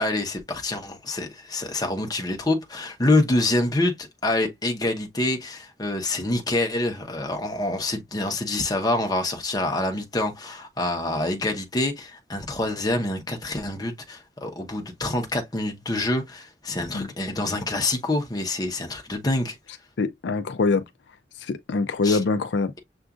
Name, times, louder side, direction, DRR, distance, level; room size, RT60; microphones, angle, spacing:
voice 1, 0.0-19.6 22.0-22.2, left 2 dB, 20° left, 0.9 m, -26 dB
voice 2, 20.0-20.8 21.5-22.7, left 4 dB, 75° left, 0.4 m, -24 dB
6.9 x 2.5 x 2.4 m
head